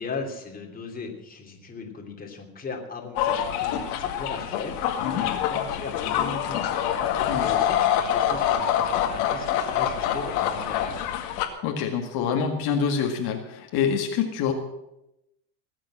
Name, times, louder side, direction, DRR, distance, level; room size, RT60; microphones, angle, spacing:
voice 1, 0.0-11.2, left 4 dB, 20° left, 1 dB, 3.0 m, -38 dB
sound 1, 3.2-11.5, left 10 dB, 80° left, 2.3 m, -25 dB
voice 2, 11.6-14.5, left 7 dB, 55° left, 2 dB, 2.0 m, -26 dB
19.5 x 7.6 x 7.6 m, 0.89 s
supercardioid pair, 125°, 45 cm